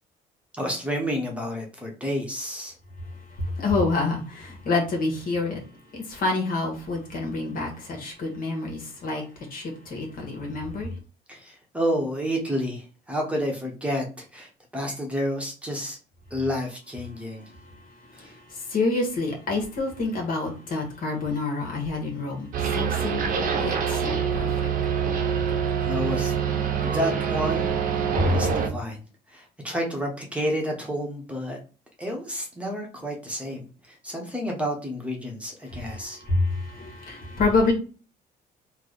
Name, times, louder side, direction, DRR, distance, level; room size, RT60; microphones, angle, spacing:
voice 1, 0.6-2.7 11.3-16.0 16.3-17.5 18.1-18.3 25.8-26.3 26.8-27.7 28.2-29.0 29.3-31.6 32.0-36.2, equal, 5° right, 0.9 m, -30 dB
voice 2, 3.4-5.6 5.9-9.2 9.5-10.9 18.1-24.7 35.7-37.7, left 3 dB, 55° left, 1.3 m, -28 dB
sound 1, 22.5-28.7, right 7 dB, 55° right, 0.8 m, -25 dB
3.2 x 2.1 x 3.9 m
cardioid pair, 110°, 17 cm